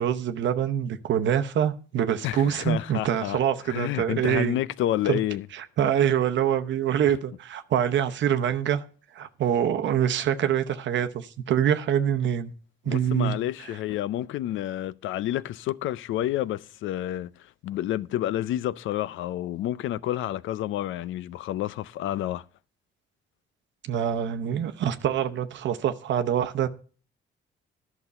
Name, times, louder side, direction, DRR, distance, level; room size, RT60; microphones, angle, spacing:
voice 1, 0.0-4.6 5.1-5.2 5.5-8.8 9.1-12.5 12.8-13.4 23.9-26.7, right 9 dB, 65° right, 0.8 m, -25 dB
voice 2, 2.2-3.4 3.7-5.5 12.9-17.3 17.6-22.4, left 13 dB, 80° left, 0.5 m, -29 dB
11.0 x 6.1 x 6.8 m
cardioid pair, 90°, 20 cm